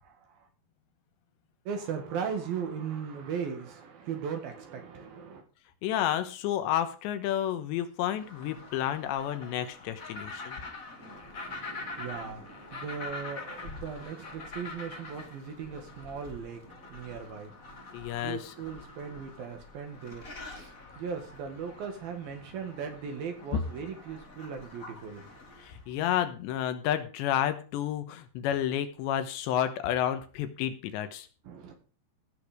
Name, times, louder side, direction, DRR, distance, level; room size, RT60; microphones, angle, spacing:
voice 1, 0.0-0.5 1.6-5.4 11.0-25.4 31.4-31.7, right 6 dB, 65° right, 5 dB, 3.4 m, -38 dB
voice 2, 5.8-10.6 17.9-18.5 25.6-31.3, left 11 dB, 85° left, 10 dB, 3.4 m, -30 dB
sound 1, 8.1-25.8, left 3 dB, 45° left, 1.0 m, -45 dB
16.5 x 6.4 x 5.1 m, 0.36 s
omnidirectional pair, 5.0 m